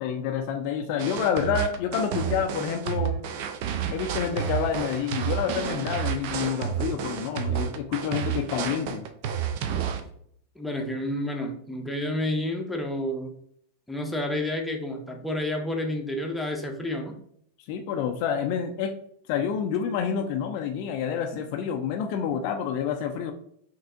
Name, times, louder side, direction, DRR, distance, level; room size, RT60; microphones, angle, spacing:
voice 1, 0.0-3.2 3.9-9.1 17.7-18.9 19.3-23.3, left 7 dB, 45° left, 5 dB, 0.4 m, -28 dB
sound 1, 1.0-10.0, right 8 dB, 45° right, 0.4 m, -30 dB
voice 2, 10.6-13.3 13.9-17.2, left 1 dB, 5° left, 1 dB, 0.7 m, -30 dB
5.5 x 2.7 x 2.5 m, 0.67 s
figure-of-eight pair, 90°, 0 cm